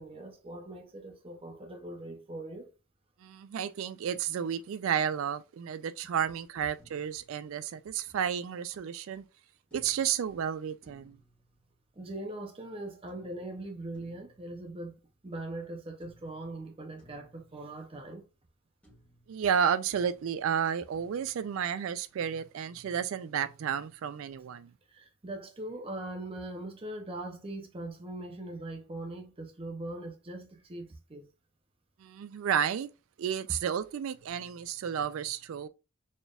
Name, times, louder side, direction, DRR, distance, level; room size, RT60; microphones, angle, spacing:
voice 1, 0.0-2.7 12.0-18.3 24.9-31.3, right 1 dB, 25° right, 0.6 m, -41 dB
voice 2, 3.2-9.2 9.7-11.2 19.3-24.7 32.0-32.9 33.2-35.7, right 8 dB, 65° right, 0.3 m, -32 dB
sound 1, 6.8-8.3 9.7-12.3 13.1-15.6 16.0-18.6 18.8-22.3, right 1 dB, 5° left, 1.5 m, -63 dB
4.2 x 3.4 x 2.4 m
head